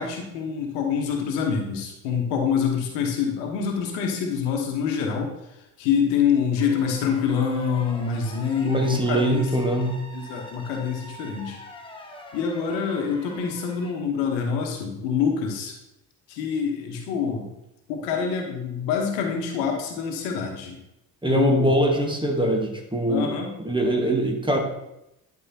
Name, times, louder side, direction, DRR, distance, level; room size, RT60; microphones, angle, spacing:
voice 1, 0.0-5.3 5.8-9.5 10.1-11.6 12.3-15.7 16.3-17.5 17.9-20.8 21.3-21.7 23.1-23.5, left 6 dB, 70° left, 2 dB, 1.3 m, -26 dB
sound 1, 6.6-13.9, left 1 dB, 10° left, 1.4 m, -43 dB
voice 2, 8.6-10.0 21.2-23.3 23.6-24.6, right 1 dB, 10° right, 2 dB, 1.5 m, -22 dB
11.0 x 4.7 x 2.9 m, 0.89 s
hypercardioid pair, 50°, 46 cm